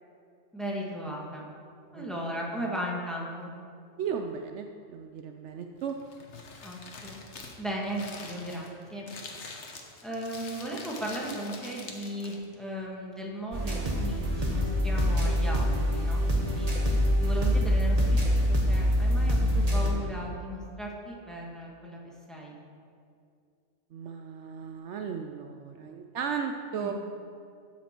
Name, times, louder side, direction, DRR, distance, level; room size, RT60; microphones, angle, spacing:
voice 1, 0.5-1.5 1.9-3.5 6.6-7.2 7.6-9.1 10.0-16.7 17.2-22.0 22.3-22.6 26.7-26.9, equal, ahead, -3 dB, 1.4 m, -36 dB
voice 2, 4.0-6.0 23.9-26.9, right 7 dB, 70° right, 5 dB, 0.8 m, -35 dB
Crumpling crinkling, 5.8-12.6, left 4 dB, 65° left, 1.3 m, -45 dB
sound 1, 13.5-19.9, equal, 30° right, 1.3 m, -25 dB
12.5 x 5.9 x 4.4 m, 2.3 s
omnidirectional pair, 1.3 m